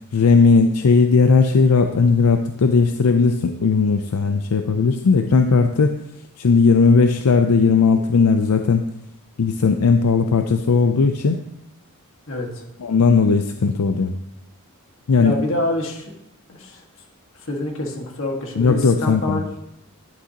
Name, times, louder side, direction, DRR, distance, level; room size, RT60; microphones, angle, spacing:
voice 1, 0.1-6.0 6.4-8.9 9.4-11.4 12.8-14.2 15.1-15.3 18.6-19.4, left 4 dB, 90° left, 7 dB, 0.5 m, -17 dB
voice 2, 12.3-12.6 15.2-16.1 16.5-16.8 17.4-19.5, left 1 dB, 60° left, 1 dB, 1.7 m, -26 dB
10.5 x 7.9 x 2.9 m, 0.81 s
head